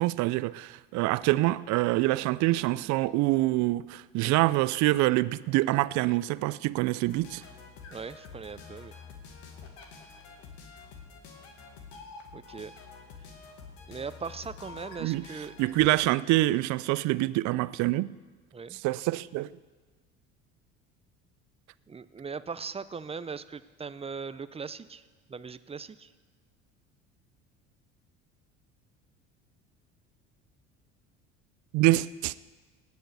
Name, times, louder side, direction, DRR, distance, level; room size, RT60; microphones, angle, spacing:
voice 1, 0.0-7.4 15.0-15.2 15.6-18.1 18.8-19.5 31.7-32.3, right 18 dB, 60° right, 0.5 m, -25 dB
sound 1, 7.0-16.0, left 5 dB, 80° left, 2.2 m, -48 dB
voice 2, 7.9-8.9 12.3-12.7 13.9-15.6 18.5-18.8 21.9-25.0 25.3-26.1, right 5 dB, 20° right, 0.6 m, -39 dB
18.0 x 6.5 x 8.2 m
hypercardioid pair, 75°, 32 cm